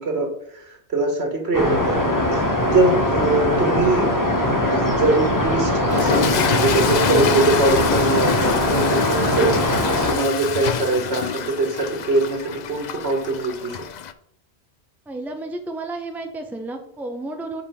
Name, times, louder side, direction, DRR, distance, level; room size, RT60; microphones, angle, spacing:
voice 1, 0.0-4.2 4.8-9.6 10.1-13.8, right 2 dB, 75° right, 2 dB, 1.7 m, -22 dB
sound 1, 1.5-10.1, left 1 dB, 20° left, 1.1 m, -21 dB
Toilet flush / Fill (with liquid), 5.8-14.1, left 8 dB, 55° left, 0.5 m, -26 dB
voice 2, 15.1-17.6, right 2 dB, ahead, 4 dB, 0.7 m, -32 dB
5.1 x 5.1 x 5.7 m, 0.69 s
omnidirectional pair, 1.1 m